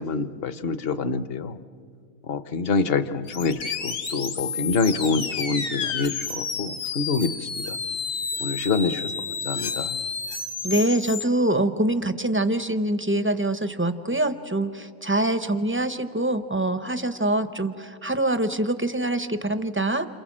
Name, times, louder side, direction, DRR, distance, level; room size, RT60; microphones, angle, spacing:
voice 1, 0.0-1.6 2.3-7.3 7.7-7.8 8.4-9.1 9.5-10.0, left 4 dB, 50° left, 13 dB, 0.9 m, -26 dB
sound 1, 3.3-11.2, left 5 dB, 65° left, 1.8 m, -31 dB
voice 2, 10.6-20.1, right 1 dB, 15° right, 11 dB, 0.4 m, -24 dB
28.5 x 27.0 x 7.4 m, 2.1 s
omnidirectional pair, 1.5 m